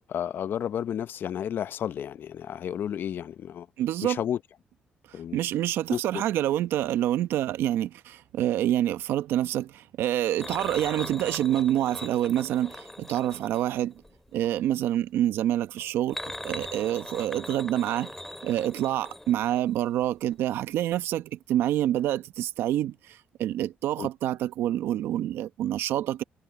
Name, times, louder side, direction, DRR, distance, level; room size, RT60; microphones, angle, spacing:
voice 1, 0.0-3.7 4.0-4.4 5.1-5.4 5.9-6.2 24.0-24.1, left 9 dB, 65° left, 0.8 m, -32 dB
voice 2, 3.8-4.2 5.1-13.9 14.3-16.2 16.4-18.2 18.4-26.2, right 12 dB, 80° right, 1.0 m, -27 dB
sound 1, 10.4-14.6 15.8-20.1 20.3-20.5 20.8-20.9, left 1 dB, 5° left, 3.3 m, -41 dB
supercardioid pair, 70°, 4 cm